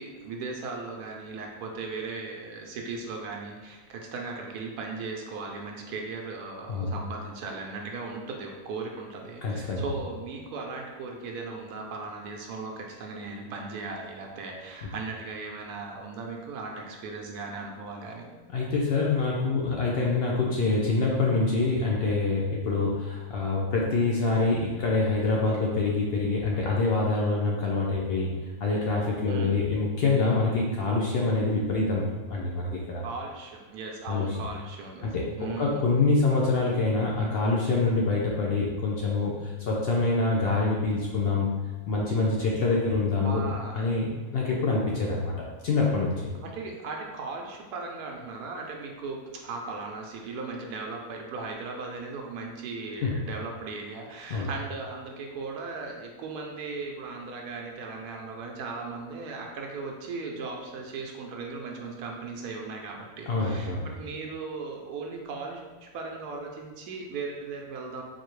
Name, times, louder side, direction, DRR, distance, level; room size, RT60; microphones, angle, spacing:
voice 1, 0.0-18.2 29.3-29.5 33.0-35.1 35.4-35.9 43.2-43.9 46.4-68.0, right 4 dB, 85° right, 1 dB, 1.1 m, -37 dB
voice 2, 9.4-9.8 18.5-28.3 28.6-33.0 34.1-34.4 35.0-35.2 35.6-41.5 41.9-43.4 43.7-44.1 44.3-45.4 45.6-46.2 53.0-53.2 54.3-54.5 63.3-63.9, left 3 dB, 70° left, -3 dB, 0.5 m, -25 dB
4.1 x 2.7 x 3.1 m, 1.3 s
omnidirectional pair, 1.6 m